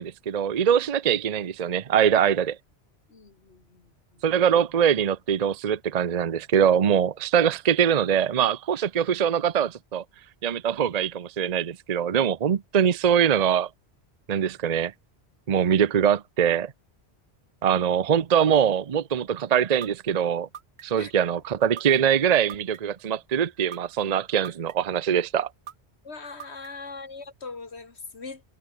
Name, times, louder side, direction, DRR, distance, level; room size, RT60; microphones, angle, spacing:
voice 1, 0.0-2.6 4.2-10.0 10.4-13.7 14.3-14.9 15.5-16.7 17.6-20.5 20.8-25.5, right 8 dB, 45° right, 0.7 m, -23 dB
voice 2, 3.1-4.2 21.0-21.1 26.0-28.4, left 4 dB, 80° left, 2.5 m, -41 dB
sound 1, 19.8-19.9 20.5-21.1 21.8-21.9 22.5-23.0 23.7-23.8 24.5-25.0 25.7-25.8 26.4-26.9, right 9 dB, 75° right, 1.1 m, -40 dB
omnidirectional pair, 1.1 m